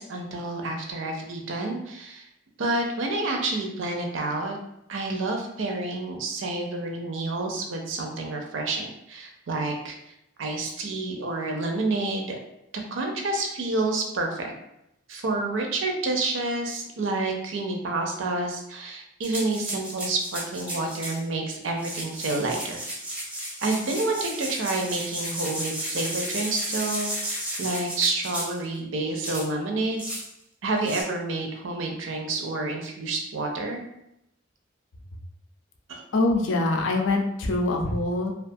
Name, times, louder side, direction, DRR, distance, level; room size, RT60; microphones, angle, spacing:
voice 1, 0.0-2.3 2.6-4.6 4.9-9.9 10.4-12.4 12.9-14.5 15.1-22.8 23.6-30.0 30.6-33.8 35.9-36.0, right 2 dB, 70° right, 2 dB, 0.5 m, -29 dB
sound 1, 19.2-21.2 21.7-28.6 29.2-29.5 30.0-30.3 30.8-31.0, right 1 dB, 5° right, 0.5 m, -33 dB
voice 2, 36.1-38.3, left 2 dB, 70° left, 2 dB, 0.4 m, -24 dB
2.4 x 2.3 x 2.6 m, 0.82 s
head